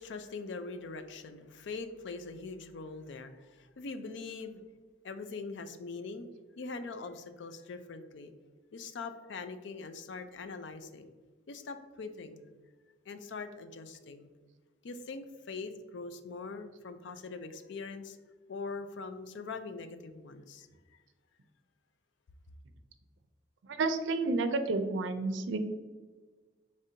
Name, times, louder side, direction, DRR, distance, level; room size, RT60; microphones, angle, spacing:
voice 1, 0.0-4.6 5.0-6.3 6.6-8.3 8.7-11.1 11.5-12.5 13.1-14.3 14.8-18.2 18.5-20.7, left 4 dB, 70° left, 9 dB, 0.4 m, -42 dB
voice 2, 23.7-25.6, right 3 dB, 70° right, 8 dB, 0.4 m, -30 dB
5.1 x 3.2 x 2.7 m, 1.4 s
head